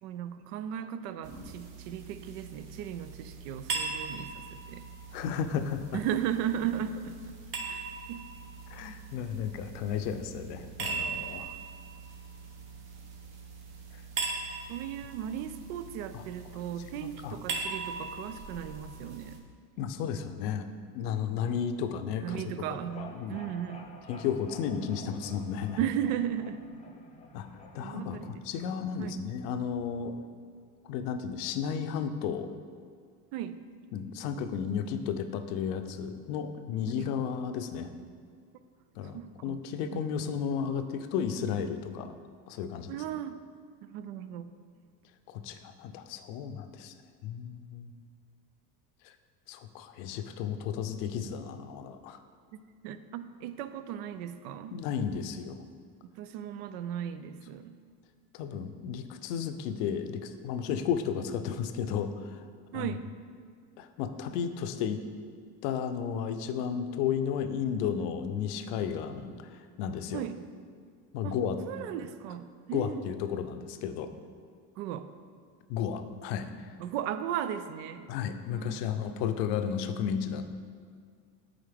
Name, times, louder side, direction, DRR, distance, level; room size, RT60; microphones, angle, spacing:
voice 1, 0.0-4.8 5.9-7.2 7.7-8.2 14.7-19.4 22.2-23.8 25.8-26.6 27.8-28.4 29.0-29.2 33.3-33.6 37.0-37.1 39.1-39.5 39.9-40.0 42.9-43.4 43.8-44.5 52.5-54.7 56.2-57.7 62.7-63.0 70.1-70.4 71.2-71.4 71.7-73.0 74.8-75.1 76.8-78.1 78.5-78.8, right 10 dB, 70° right, 12 dB, 0.5 m, -36 dB
sound 1, 1.2-19.4, right 4 dB, 50° right, 1.2 m, -40 dB
voice 2, 5.1-6.0 8.7-11.5 16.1-16.2 17.0-17.4 19.8-20.7 20.9-22.4 22.7-23.4 24.1-25.8 27.3-27.5 27.7-30.1 30.9-32.5 33.9-37.9 39.0-42.2 42.5-43.0 45.3-46.9 47.2-47.9 49.0-49.1 49.5-52.2 54.7-55.6 58.3-62.4 62.7-62.9 63.8-65.0 65.6-70.2 71.1-71.6 72.7-74.1 75.7-76.7 78.1-80.4, left 7 dB, 75° left, 9 dB, 0.6 m, -33 dB
sound 2, 22.6-28.7, left 3 dB, 15° left, 0.7 m, -51 dB
8.6 x 3.8 x 3.4 m, 2.1 s
hypercardioid pair, 85°, 48 cm